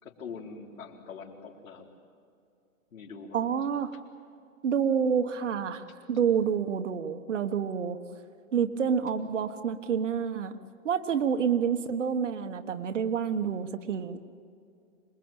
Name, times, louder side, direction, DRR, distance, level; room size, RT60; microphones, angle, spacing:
voice 1, 0.0-1.9 2.9-3.7, left 5 dB, 70° left, 0 dB, 4.4 m, -44 dB
voice 2, 3.3-3.9 4.6-8.0 8.5-10.5 10.8-14.2, right 7 dB, 60° right, 9 dB, 1.4 m, -28 dB
26.5 x 21.0 x 8.9 m, 2.5 s
hypercardioid pair, 170°, 42 cm